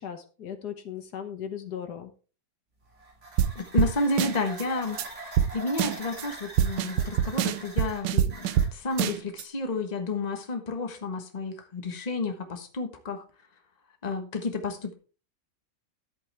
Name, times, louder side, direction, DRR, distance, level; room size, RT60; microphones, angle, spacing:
voice 1, 0.0-2.1, left 8 dB, 70° left, 7 dB, 1.7 m, -37 dB
sound 1, 2.8-9.1, right 2 dB, 40° right, 2.8 m, -44 dB
sound 2, 3.4-3.5 3.8-3.9 4.2-4.6 5.0-5.1 5.4-5.5 5.8-6.2 6.6-8.7 9.0-9.4, right 10 dB, 85° right, 1.4 m, -24 dB
voice 2, 3.5-5.2 5.5-13.2 14.0-14.9, left 3 dB, 25° left, 5 dB, 1.4 m, -31 dB
11.5 x 8.1 x 3.4 m, 0.37 s
omnidirectional pair, 1.9 m